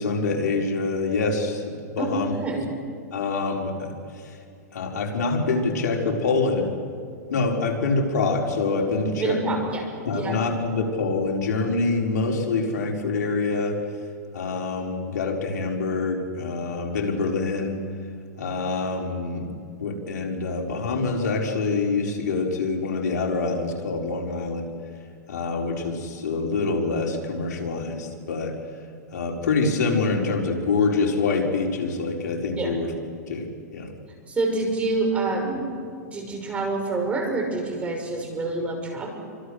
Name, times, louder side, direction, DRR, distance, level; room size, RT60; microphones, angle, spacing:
voice 1, 0.0-1.6 2.0-2.3 3.1-3.9 4.2-4.4 4.7-6.7 7.3-9.5 10.0-13.8 14.3-17.8 18.4-19.5 19.8-24.7 25.3-28.6 29.1-32.9 33.3-33.5 33.7-33.9, left 3 dB, 80° left, 1 dB, 4.8 m, -25 dB
voice 2, 2.0-2.8 9.2-10.4 32.6-32.8 34.3-35.7 36.1-39.1, right 3 dB, 15° right, 2 dB, 5.7 m, -27 dB
29.0 x 25.0 x 6.5 m, 2.3 s
hypercardioid pair, 140°, 9 cm